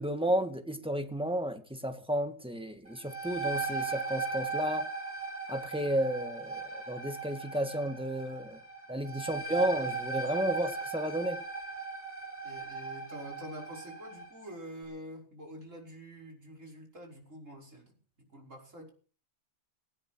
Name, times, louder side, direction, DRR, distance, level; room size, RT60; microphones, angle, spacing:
voice 1, 0.0-4.9 5.5-8.6 8.9-11.4, right 1 dB, 5° right, 6 dB, 2.0 m, -32 dB
sound 1, 2.9-14.3, right 4 dB, 30° right, 4.8 m, -38 dB
voice 2, 12.4-18.9, equal, 75° right, -1 dB, 6.0 m, -47 dB
18.0 x 16.5 x 4.6 m, 0.42 s
omnidirectional pair, 1.3 m